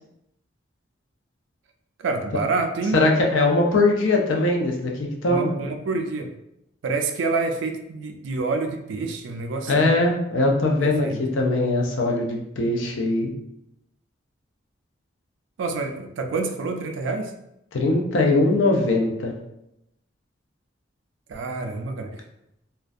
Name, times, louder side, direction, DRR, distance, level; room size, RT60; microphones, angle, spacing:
voice 1, 2.0-3.0 5.3-6.3 6.8-9.9 10.8-11.2 15.6-17.3 21.3-22.2, right 3 dB, 75° right, 5 dB, 0.3 m, -27 dB
voice 2, 2.9-5.5 9.7-13.3 17.7-19.3, left 2 dB, 80° left, 1 dB, 0.5 m, -21 dB
2.4 x 2.1 x 2.5 m, 0.84 s
head